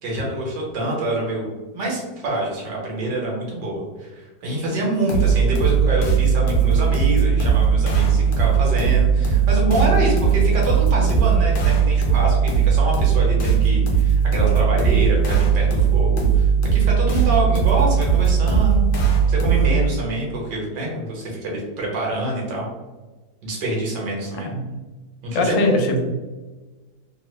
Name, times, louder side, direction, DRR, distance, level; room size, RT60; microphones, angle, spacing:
voice 1, 0.0-18.8 19.3-22.7 23.4-24.5 25.2-26.0, right 1 dB, 70° right, -3 dB, 1.6 m, -26 dB
sound 1, 5.1-19.9, right 6 dB, 65° left, 1.1 m, -18 dB
voice 2, 25.3-26.0, left 2 dB, 85° left, 3 dB, 1.3 m, -21 dB
3.5 x 2.0 x 3.0 m, 1.2 s
omnidirectional pair, 1.9 m